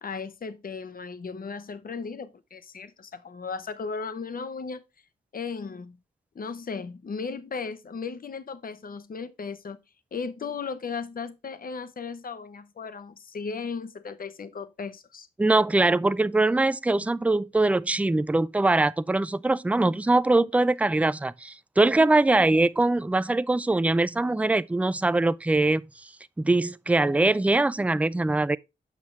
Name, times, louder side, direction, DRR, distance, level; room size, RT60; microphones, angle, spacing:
voice 1, 0.0-4.8 5.3-6.0 6.3-9.8 10.1-15.3, left 5 dB, 50° left, 0.8 m, -36 dB
voice 2, 15.4-25.8 26.4-28.6, right 2 dB, 5° right, 0.4 m, -22 dB
7.4 x 5.8 x 3.2 m
cardioid pair, 50°, 20 cm